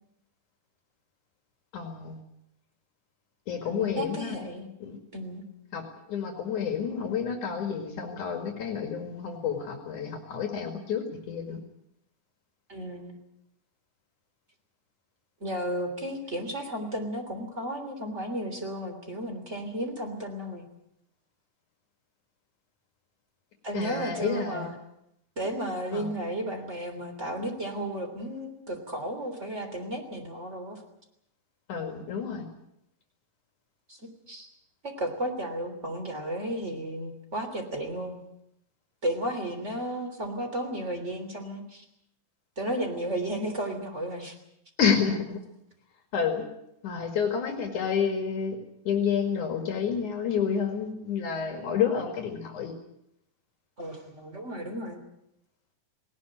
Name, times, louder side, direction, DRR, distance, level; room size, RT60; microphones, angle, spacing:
voice 1, 1.7-2.2 3.5-4.4 4.8-5.0 5.7-5.8 6.1-11.6 23.7-24.7 25.9-26.1 31.7-32.5 44.8-45.4 46.1-46.5 46.8-48.6 48.9-52.7, left 7 dB, 65° left, 4 dB, 3.5 m, -29 dB
voice 2, 3.6-4.7 5.1-5.4 12.7-13.2 15.4-20.6 23.6-24.7 25.4-30.8 33.9-34.0 34.3-34.5 34.8-38.2 39.0-41.8 42.6-44.3 53.8-55.0, right 1 dB, 20° right, 5 dB, 3.3 m, -33 dB
19.0 x 19.0 x 9.1 m, 0.79 s
omnidirectional pair, 3.8 m